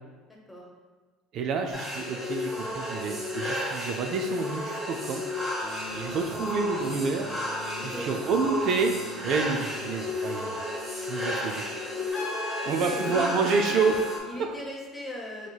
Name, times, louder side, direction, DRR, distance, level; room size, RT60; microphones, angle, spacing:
voice 1, 0.3-0.7 7.8-8.4 12.1-13.3 14.2-15.5, left 1 dB, 10° left, -2 dB, 0.8 m, -39 dB
voice 2, 1.3-5.2 5.9-7.3 7.8-9.0 9.2-10.6 11.0-11.6 12.7-14.5, right 5 dB, 60° right, 4 dB, 0.3 m, -28 dB
sound 1, 1.7-14.2, left 1 dB, 10° right, 1.2 m, -32 dB
sound 2, 5.6-12.1, left 4 dB, 50° left, 0.7 m, -45 dB
Trumpet, 12.1-14.1, left 3 dB, 80° left, 0.6 m, -36 dB
4.4 x 2.8 x 2.3 m, 1.4 s
supercardioid pair, 95°, 0 cm